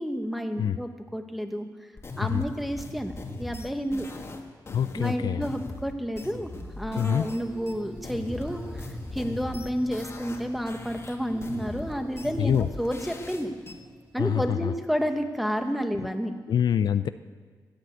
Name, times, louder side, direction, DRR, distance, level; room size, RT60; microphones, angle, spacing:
voice 1, 0.0-1.7 2.2-3.1 3.4-4.1 4.9-6.5 6.8-13.5 14.1-16.3, equal, ahead, 6 dB, 1.3 m, -30 dB
sound 1, 2.0-7.4 7.7-10.4 10.7-13.7, left 2 dB, 35° left, 1.7 m, -39 dB
voice 2, 4.7-5.5 6.9-7.3 12.4-12.7 14.2-14.7 16.5-17.1, left 9 dB, 70° left, 12 dB, 0.5 m, -25 dB
sound 2, 7.4-15.0, right 1 dB, 25° right, 4.1 m, -47 dB
15.5 x 10.5 x 7.9 m, 1.5 s
cardioid pair, 110°, 7 cm